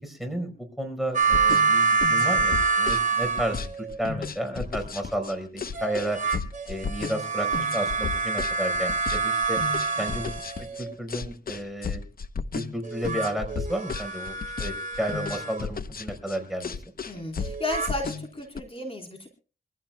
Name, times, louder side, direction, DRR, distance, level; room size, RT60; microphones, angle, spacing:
voice 1, 0.0-6.2 6.7-9.6 10.0-10.3 10.8-12.0 12.5-16.7, right 1 dB, ahead, 5 dB, 4.8 m, -32 dB
sound 1, 1.1-4.0 5.7-10.9 12.8-15.7 17.4-17.9, right 4 dB, 45° right, 3.4 m, -26 dB
sound 2, 1.2-18.6, left 5 dB, 55° left, 0.8 m, -34 dB
voice 2, 17.1-19.3, left 2 dB, 30° left, 1 dB, 4.0 m, -33 dB
25.5 x 15.0 x 2.3 m, 0.36 s
cardioid pair, 70°, 18 cm